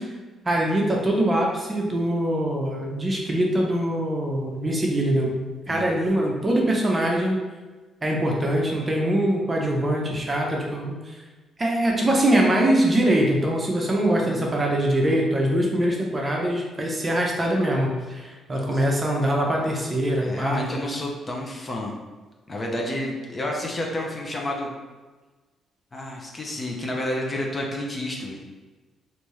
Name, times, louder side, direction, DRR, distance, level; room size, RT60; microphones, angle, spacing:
voice 1, 0.5-5.4 5.7-7.4 8.0-11.1 11.6-20.8, right 1 dB, 25° right, -1 dB, 0.7 m, -23 dB
voice 2, 18.5-18.9 20.2-21.9 22.5-24.7 25.9-28.4, left 1 dB, 30° left, 0 dB, 0.7 m, -30 dB
3.3 x 2.7 x 3.1 m, 1.3 s
cardioid pair, 90°, 0 cm